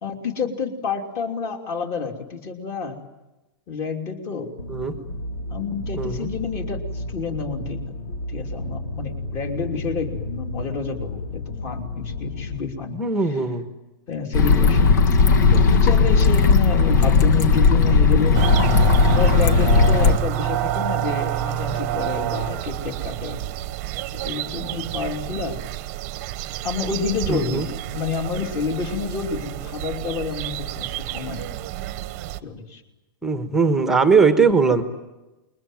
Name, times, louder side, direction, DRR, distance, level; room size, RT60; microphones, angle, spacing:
voice 1, 0.0-3.0 3.7-4.6 5.5-7.8 8.3-13.4 14.1-14.9 15.5-18.4 19.1-23.4 24.1-25.6 26.6-27.7 27.9-31.6 32.4-32.8, left 5 dB, 25° left, 5 dB, 3.0 m, -29 dB
sound 1, 4.6-12.6, left 2 dB, 90° left, 6.3 m, -32 dB
voice 2, 6.0-6.3 12.9-13.6 27.3-27.7 33.2-34.8, right 4 dB, 5° right, 7 dB, 1.3 m, -19 dB
sound 2, 14.3-20.2, left 4 dB, 55° left, 1.9 m, -16 dB
sound 3, 18.3-32.4, right 13 dB, 30° right, 1.1 m, -28 dB
28.0 x 22.0 x 9.2 m, 1.0 s
supercardioid pair, 175°, 12 cm